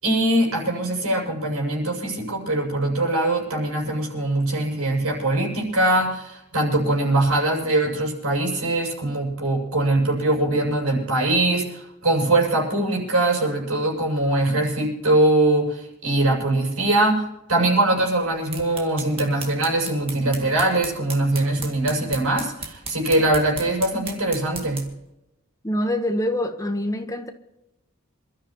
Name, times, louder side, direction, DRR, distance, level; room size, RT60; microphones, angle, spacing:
voice 1, 0.0-24.9, right 2 dB, 85° right, 0 dB, 6.9 m, -22 dB
sound 1, 18.2-25.0, right 4 dB, 25° right, 2.0 m, -37 dB
voice 2, 25.6-27.3, left 1 dB, 15° left, 6 dB, 1.0 m, -25 dB
27.0 x 13.0 x 3.0 m, 0.92 s
head